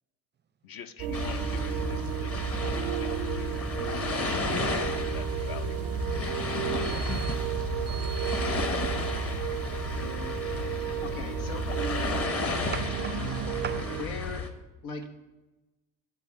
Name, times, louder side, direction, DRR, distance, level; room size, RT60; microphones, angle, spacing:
voice 1, 0.6-2.5 3.0-3.7 4.5-5.9, left 8 dB, 45° left, 0.7 m, -45 dB
sound 1, 1.0-14.0, right 10 dB, 75° right, 0.6 m, -33 dB
sound 2, 1.1-14.5, left 4 dB, 30° left, 1.0 m, -33 dB
voice 2, 6.8-7.5 7.9-8.5 12.7-13.2 13.6-13.9, right 7 dB, 20° right, 0.5 m, -40 dB
voice 3, 10.7-11.8 13.7-14.5 14.8-15.1, left 4 dB, 80° left, 1.1 m, -39 dB
9.1 x 3.5 x 6.9 m
hypercardioid pair, 65°, 50 cm